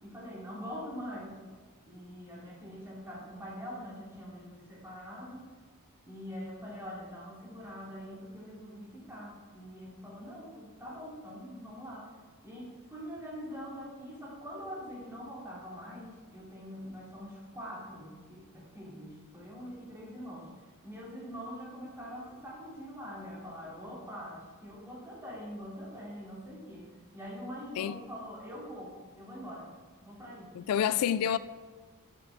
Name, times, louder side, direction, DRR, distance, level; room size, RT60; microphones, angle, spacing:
voice 1, 0.0-1.4 1.8-5.5 6.0-12.1 12.4-20.5 20.8-29.7 30.0-30.5 30.8-31.0, equal, 10° right, 2.8 m, -44 dB
voice 2, 30.5-31.4, left 9 dB, 75° left, 0.3 m, -28 dB
8.8 x 8.3 x 3.5 m
head